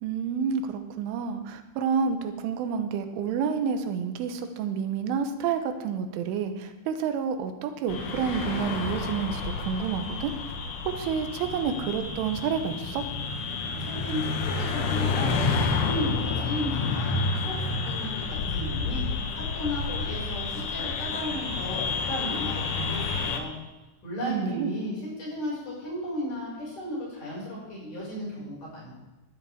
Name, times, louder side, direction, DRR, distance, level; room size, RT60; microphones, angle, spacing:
voice 1, 0.0-10.3 10.9-13.1 24.2-24.8, right 6 dB, 90° right, 7 dB, 3.5 m, -29 dB
sound 1, 7.9-23.4, left 4 dB, 75° left, 1.9 m, -30 dB
voice 2, 13.8-23.5 24.0-29.0, equal, 45° left, -6 dB, 7.2 m, -35 dB
16.5 x 12.5 x 3.6 m, 1.1 s
omnidirectional pair, 5.5 m